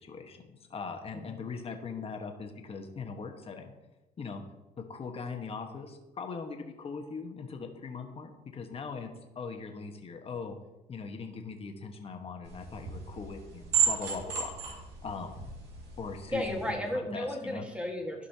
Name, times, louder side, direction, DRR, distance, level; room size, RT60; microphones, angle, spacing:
voice 1, 0.0-3.7 4.2-4.4 4.9-9.1 9.3-10.6 10.9-14.5 15.0-15.5 16.0-16.8 17.1-17.6, left 5 dB, 35° left, 4 dB, 1.3 m, -40 dB
sound 1, 12.4-16.7, right 7 dB, 80° right, 2.3 m, -33 dB
voice 2, 16.3-18.3, left 1 dB, 5° right, 1 dB, 1.6 m, -34 dB
15.0 x 5.4 x 2.8 m, 1.0 s
cardioid pair, 110°, 17 cm